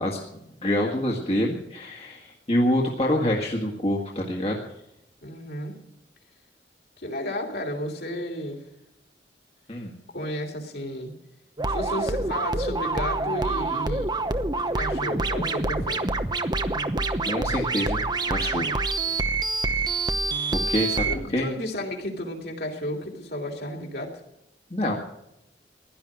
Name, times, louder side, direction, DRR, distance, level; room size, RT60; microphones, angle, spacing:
voice 1, 0.0-4.6 9.7-9.9 17.3-18.7 20.5-21.1 21.3-21.5 24.7-24.9, left 1 dB, 35° left, -1 dB, 1.8 m, -26 dB
voice 2, 5.2-5.7 7.0-8.6 10.1-11.1 11.7-14.1 14.7-16.1 21.1-24.2 24.8-25.0, equal, 60° left, 2 dB, 3.3 m, -33 dB
sound 1, 11.6-21.2, right 3 dB, 25° right, 0.9 m, -26 dB
16.0 x 11.5 x 6.4 m, 0.82 s
head